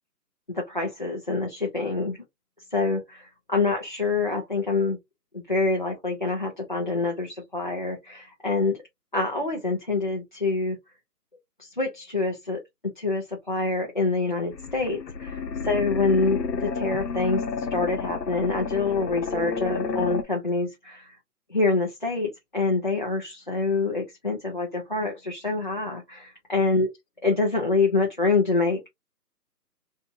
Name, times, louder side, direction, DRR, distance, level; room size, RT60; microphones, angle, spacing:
voice 1, 0.5-2.2 2.7-5.0 5.3-8.8 9.1-10.8 11.6-12.6 13.0-21.2 21.5-26.9 27.2-28.9, left 3 dB, 30° left, 0.5 m, -26 dB
sound 1, 14.5-20.2, left 5 dB, 85° left, 0.9 m, -31 dB
3.3 x 2.7 x 2.5 m
hypercardioid pair, 165°, 49 cm